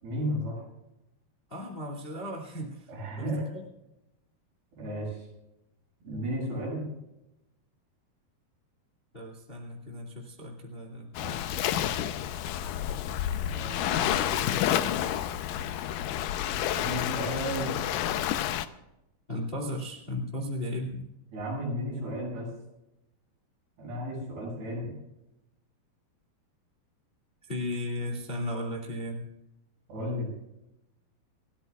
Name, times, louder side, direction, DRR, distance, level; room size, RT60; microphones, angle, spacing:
voice 1, 0.0-0.6 2.9-3.5 4.8-5.2 6.0-6.8 16.8-17.8 21.3-22.5 23.8-24.9 29.9-30.3, equal, 75° right, -3 dB, 9.1 m, -33 dB
voice 2, 1.5-2.9 3.2-3.6 9.1-11.9 13.5-15.0 19.3-21.1 27.5-29.2, left 1 dB, 20° left, 1 dB, 1.8 m, -36 dB
Waves surf, 11.1-18.7, left 11 dB, 80° left, 2.0 m, -29 dB
29.5 x 13.0 x 2.4 m, 0.92 s
omnidirectional pair, 4.6 m